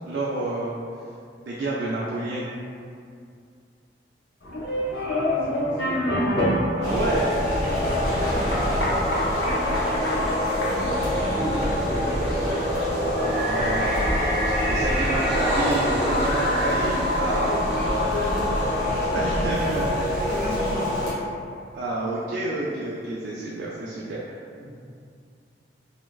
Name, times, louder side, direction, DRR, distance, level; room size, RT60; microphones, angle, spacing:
voice 1, 0.1-0.8 1.4-2.5 6.8-7.3 13.2-14.3 14.7-17.6 19.1-20.1 21.7-24.4, right 2 dB, 70° right, -5 dB, 0.3 m, -29 dB
sound 1, 4.4-17.2, left 1 dB, 80° left, 0.6 m, -30 dB
voice 2, 4.9-6.1 8.1-12.5 14.7-15.3 16.1-16.5 17.1-18.5 19.4-21.3 24.5-24.8, equal, 5° right, -15 dB, 1.3 m, -36 dB
sound 2, 6.8-21.1, left 1 dB, 40° right, 1.1 m, -25 dB
sound 3, 14.8-19.4, equal, 35° left, 0.6 m, -31 dB
3.2 x 2.3 x 2.3 m, 2.3 s
head